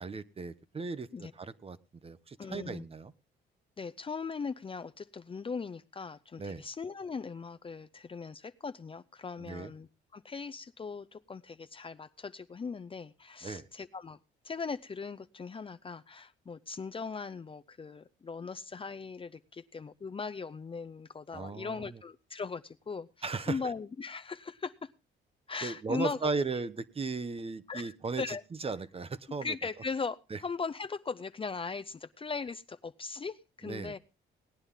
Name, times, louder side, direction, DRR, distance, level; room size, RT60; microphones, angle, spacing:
voice 1, 0.0-1.8 2.0-3.1 6.4-6.6 9.4-9.7 13.4-13.7 21.3-22.0 23.2-23.6 25.6-28.4 28.6-29.5 30.3-30.4 33.6-33.9, right 4 dB, 30° right, 15 dB, 0.8 m, -36 dB
voice 2, 2.4-2.9 3.8-14.2 14.4-24.9 25.5-26.3 27.7-28.4 29.4-34.0, left 5 dB, 25° left, 11 dB, 0.5 m, -39 dB
18.5 x 9.8 x 3.6 m, 0.28 s
cardioid pair, 90°, 20 cm